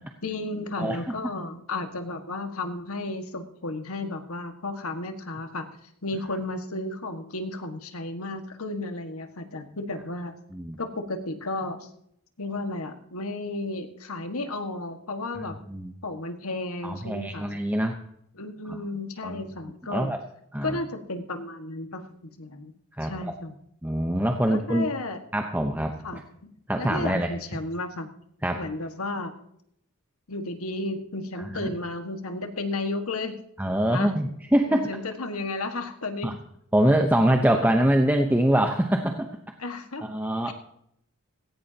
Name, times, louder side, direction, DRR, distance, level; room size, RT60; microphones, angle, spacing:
voice 1, 0.2-5.7 6.0-10.3 10.8-11.9 12.4-15.5 16.0-17.6 18.4-20.2 20.6-22.1 22.4-22.7 23.0-23.5 24.4-25.2 26.0-28.1 28.6-29.3 30.3-33.4 33.9-34.1 34.7-36.4 37.6-37.7 39.6-40.0 40.4-40.5, left 2 dB, 85° left, 6 dB, 1.7 m, -33 dB
voice 2, 0.8-1.2 10.5-10.8 15.4-15.9 16.8-18.0 18.7-18.8 19.2-19.5 19.9-20.2 20.5-20.8 22.9-23.3 23.8-24.9 25.3-26.2 26.7-27.3 28.4-28.6 31.4-31.7 33.6-34.9 36.2-36.3 36.7-39.3 40.0-40.5, right 1 dB, 10° right, 4 dB, 0.9 m, -24 dB
17.0 x 16.5 x 2.9 m, 0.73 s
head